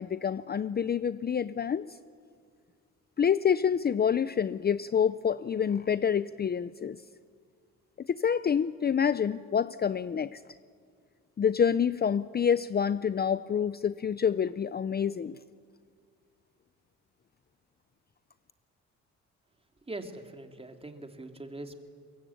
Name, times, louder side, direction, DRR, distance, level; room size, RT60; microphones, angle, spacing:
voice 1, 0.0-1.9 3.2-7.0 8.0-10.4 11.4-15.4, left 7 dB, 35° left, 15 dB, 0.6 m, -27 dB
voice 2, 19.9-21.7, right 2 dB, 20° right, 5 dB, 2.7 m, -42 dB
23.0 x 22.0 x 8.5 m, 2.1 s
cardioid pair, 90°, 30 cm